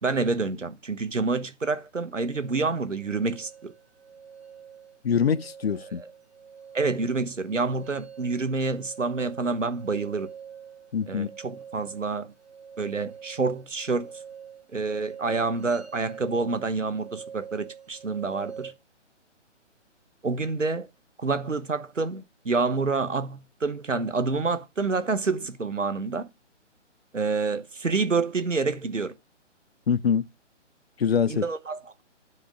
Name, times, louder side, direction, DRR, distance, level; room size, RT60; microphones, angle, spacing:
voice 1, 0.0-3.7 6.7-10.3 11.1-12.3 12.8-14.1 14.7-18.7 20.2-20.9 21.2-26.3 27.1-29.1 31.3-31.8, right 4 dB, 85° right, 1.2 m, -28 dB
sound 1, 2.2-18.7, right 7 dB, 60° right, 2.0 m, -45 dB
voice 2, 5.0-6.0 10.9-11.3 29.9-30.2 31.0-31.5, left 7 dB, 55° left, 0.6 m, -24 dB
9.6 x 5.1 x 5.3 m
figure-of-eight pair, 140°, 37 cm